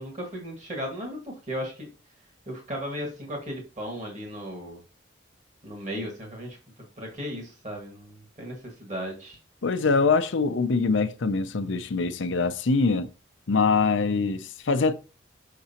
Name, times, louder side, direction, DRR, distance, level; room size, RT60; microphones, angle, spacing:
voice 1, 0.0-1.9 2.5-4.8 5.6-6.6 7.0-9.4, equal, 40° right, 1.8 m, -36 dB
voice 2, 9.6-13.1 13.5-14.9, left 4 dB, 80° left, 0.6 m, -23 dB
6.5 x 6.0 x 2.9 m
head